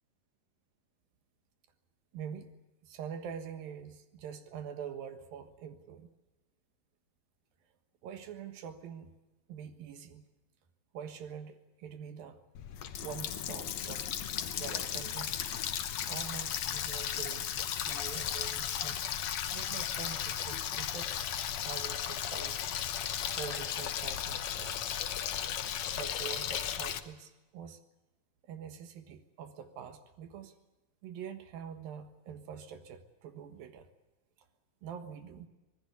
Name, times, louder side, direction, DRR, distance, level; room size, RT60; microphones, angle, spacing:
voice 1, 2.1-2.5 2.8-6.1 8.0-9.2 9.5-10.2 10.9-12.4 13.0-14.1 14.6-15.4 16.1-19.0 19.5-21.2 21.7-22.7 23.3-25.0 26.0-27.8 28.4-30.6 31.0-33.9 34.8-35.5, right 8 dB, 85° right, 8 dB, 3.3 m, -45 dB
Water tap faucet, 12.6-27.0, left 10 dB, 65° left, 2.1 m, -35 dB
26.0 x 19.0 x 8.4 m, 1.0 s
omnidirectional pair, 4.0 m